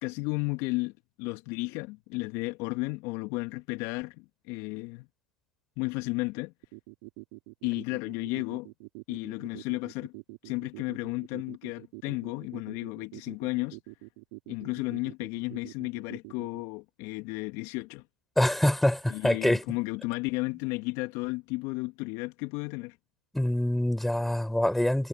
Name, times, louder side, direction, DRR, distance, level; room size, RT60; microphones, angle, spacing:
voice 1, 0.0-5.1 5.8-6.5 7.6-8.7 9.1-10.1 10.4-13.8 14.5-18.0 19.1-23.0, left 24 dB, 55° left, 2.5 m, -33 dB
sound 1, 6.6-16.6, right 30 dB, 60° right, 6.8 m, -45 dB
voice 2, 18.4-19.6 23.3-25.1, left 1 dB, 5° left, 5.4 m, -25 dB
hypercardioid pair, 100°, 6 cm